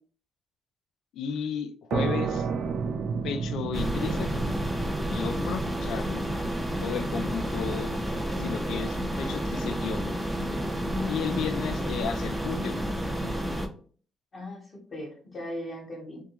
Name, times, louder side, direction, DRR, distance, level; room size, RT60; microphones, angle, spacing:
voice 1, 1.1-2.5 3.2-4.3 5.1-6.3 6.8-7.9 8.4-10.1 11.1-12.8, left 7 dB, 75° left, 8 dB, 0.3 m, -33 dB
sound 1, 1.9-9.3, right 5 dB, 65° right, 0.3 m, -33 dB
sound 2, 3.7-13.7, equal, 10° right, 0.5 m, -30 dB
voice 2, 10.9-11.3 14.3-16.2, left 1 dB, 45° left, -3 dB, 0.9 m, -39 dB
2.3 x 2.2 x 2.8 m, 0.43 s
supercardioid pair, 70°, 0 cm